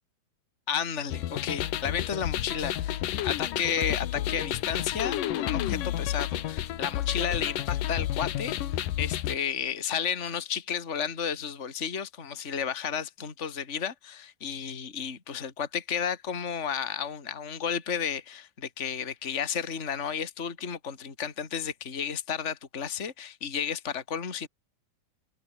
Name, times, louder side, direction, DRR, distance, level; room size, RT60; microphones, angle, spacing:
voice 1, 0.7-24.5, left 7 dB, 20° left, 2.6 m, -32 dB
sound 1, 1.1-9.4, left 12 dB, 70° left, 2.8 m, -30 dB
open air
omnidirectional pair, 4.1 m